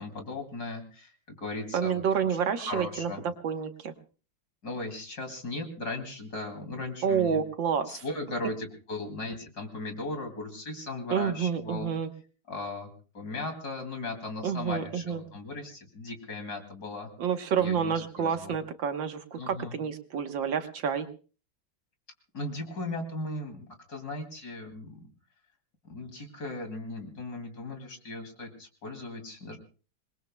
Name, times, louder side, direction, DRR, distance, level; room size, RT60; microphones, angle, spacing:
voice 1, 0.0-2.0 2.6-3.2 4.6-7.4 7.9-11.9 12.5-17.1 17.6-18.6 19.4-19.7 22.3-25.0 25.8-29.6, left 2 dB, 50° left, 5 dB, 3.2 m, -37 dB
voice 2, 1.7-3.1 3.4-3.9 7.0-8.0 11.1-12.1 14.4-15.2 17.2-21.1, right 7 dB, 65° right, 7 dB, 1.8 m, -29 dB
27.0 x 21.0 x 2.2 m, 0.37 s
omnidirectional pair, 2.3 m